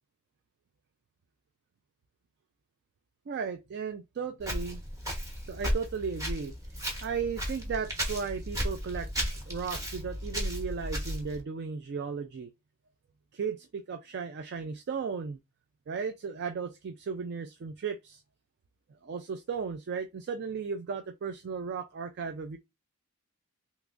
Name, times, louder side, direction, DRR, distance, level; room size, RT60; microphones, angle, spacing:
voice 1, 3.3-4.8 5.5-6.5 7.0-9.1 9.5-12.5 13.3-15.4 15.9-18.2 19.0-22.6, right 5 dB, 50° right, 0.3 m, -35 dB
Walk footsteps, 4.4-11.4, equal, 15° right, 1.0 m, -34 dB
3.4 x 2.9 x 2.5 m
head